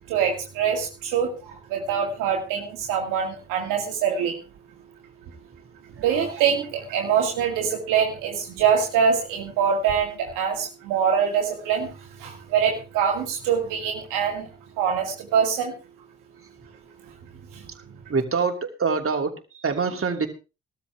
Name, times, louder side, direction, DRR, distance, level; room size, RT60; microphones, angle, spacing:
voice 1, 0.1-4.3 6.0-11.9 12.2-14.5 14.8-15.7 17.5-17.6, right 7 dB, 85° right, 2 dB, 2.1 m, -24 dB
voice 2, 18.1-20.3, right 5 dB, 45° right, 4 dB, 2.9 m, -25 dB
16.0 x 13.0 x 3.5 m, 0.31 s
hypercardioid pair, 40°, 31 cm